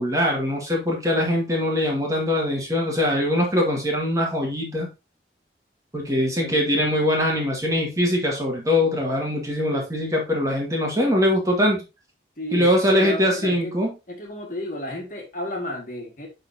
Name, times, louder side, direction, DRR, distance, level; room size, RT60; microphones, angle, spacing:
voice 1, 0.0-4.9 5.9-11.8 12.5-13.9, left 1 dB, 20° right, -1 dB, 1.9 m, -22 dB
voice 2, 6.2-6.8 12.4-13.7 14.1-16.3, left 1 dB, 45° left, 1 dB, 2.1 m, -33 dB
10.5 x 4.0 x 2.8 m, 0.27 s
head